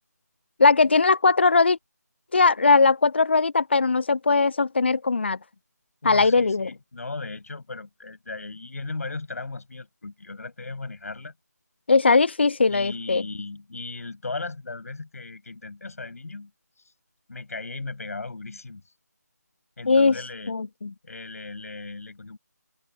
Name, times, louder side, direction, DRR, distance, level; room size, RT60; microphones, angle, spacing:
voice 1, 0.6-1.8 2.3-5.4 6.0-6.7 11.9-13.2 19.9-20.2 20.5-20.9, left 4 dB, 40° left, 0.4 m, -19 dB
voice 2, 6.0-11.3 12.7-16.5 17.3-18.8 19.8-20.6 21.0-22.4, left 3 dB, 55° left, 7.7 m, -37 dB
open air
figure-of-eight pair, 165°, 9 cm